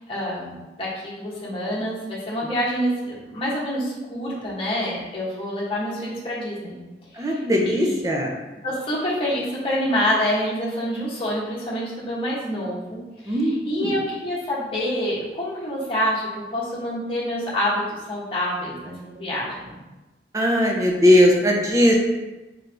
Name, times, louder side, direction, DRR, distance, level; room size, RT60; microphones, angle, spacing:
voice 1, 0.0-6.8 7.1-8.0 8.6-19.8, equal, 30° left, -6 dB, 1.2 m, -27 dB
voice 2, 7.2-8.3 13.3-13.9 20.3-21.9, equal, 20° right, 0 dB, 0.6 m, -19 dB
3.8 x 3.4 x 3.4 m, 1.1 s
head